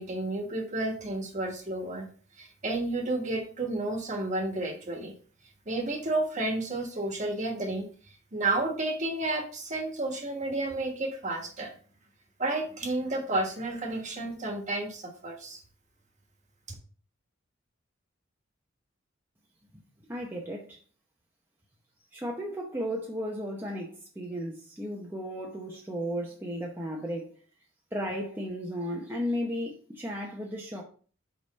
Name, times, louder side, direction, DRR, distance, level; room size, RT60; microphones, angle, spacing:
voice 1, 0.0-2.1 2.4-5.1 5.6-7.9 8.3-11.7 12.4-15.6, right 2 dB, 35° right, 1.4 m, -31 dB
voice 2, 20.1-20.8 22.1-27.4 27.9-30.8, equal, 10° right, 0.8 m, -34 dB
5.3 x 4.9 x 4.1 m
head